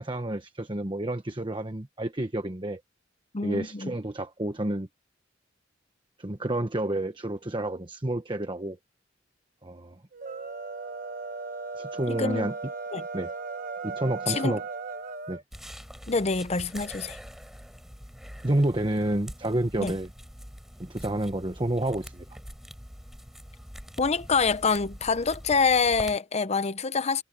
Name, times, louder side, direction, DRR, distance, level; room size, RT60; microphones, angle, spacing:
voice 1, 0.0-2.8 3.4-4.9 6.2-8.8 9.6-10.0 11.8-12.5 13.1-13.3 13.8-14.6 15.3-15.4 18.4-20.1 20.8-22.3, right 1 dB, 25° right, 1.1 m, -29 dB
voice 2, 3.3-3.9 12.1-12.5 12.9-13.1 14.3-14.6 16.1-17.2 19.8-19.9 24.0-27.2, left 4 dB, 35° left, 0.7 m, -26 dB
sound 1, 10.1-15.4, right 4 dB, 45° right, 1.3 m, -36 dB
sound 2, 15.5-26.2, equal, ahead, 5.3 m, -44 dB
head